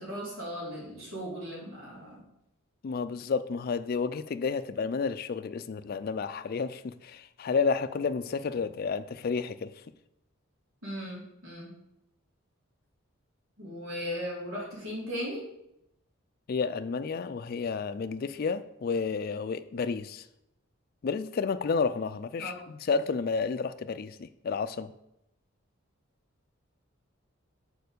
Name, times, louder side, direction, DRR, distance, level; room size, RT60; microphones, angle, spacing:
voice 1, 0.0-2.2 10.8-11.7 13.6-15.4 22.4-22.5, equal, 85° right, -4 dB, 3.1 m, -37 dB
voice 2, 2.8-9.7 16.5-20.3 21.0-24.9, left 5 dB, 45° left, 12 dB, 0.3 m, -31 dB
6.7 x 4.5 x 6.6 m, 0.83 s
head